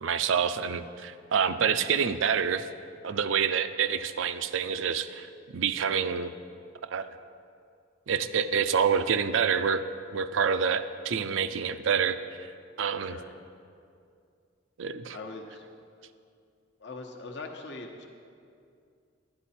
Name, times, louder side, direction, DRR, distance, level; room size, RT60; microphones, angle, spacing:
voice 1, 0.0-2.7 3.0-5.3 5.5-6.3 6.8-7.1 8.1-9.8 10.1-12.5 12.8-13.2 14.8-15.2, right 7 dB, 75° right, 11 dB, 0.4 m, -27 dB
voice 2, 12.9-13.3 15.1-15.6 16.8-18.1, left 3 dB, 60° left, 2 dB, 1.0 m, -41 dB
11.5 x 9.8 x 4.3 m, 2.4 s
head